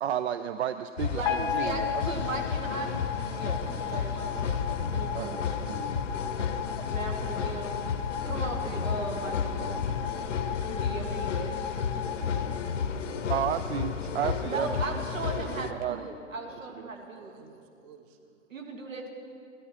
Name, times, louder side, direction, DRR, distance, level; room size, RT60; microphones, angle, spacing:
voice 1, 0.0-2.0 5.1-5.4 5.7-5.9 13.3-14.7 15.7-16.0, right 10 dB, 55° right, 11 dB, 0.5 m, -32 dB
sound 1, 1.0-15.7, left 6 dB, 70° left, 0.8 m, -32 dB
voice 2, 1.1-4.4 4.9-5.5 6.9-7.8 8.3-9.8 10.7-11.5 14.5-17.4 18.5-19.1, right 3 dB, 80° right, 2 dB, 2.1 m, -37 dB
sound 2, 1.2-13.5, left 8 dB, 20° left, 0.5 m, -36 dB
voice 3, 3.3-4.7 17.0-18.4, right 5 dB, 25° right, 6 dB, 0.7 m, -47 dB
15.0 x 12.0 x 4.3 m, 2.4 s
hypercardioid pair, 125°, 39 cm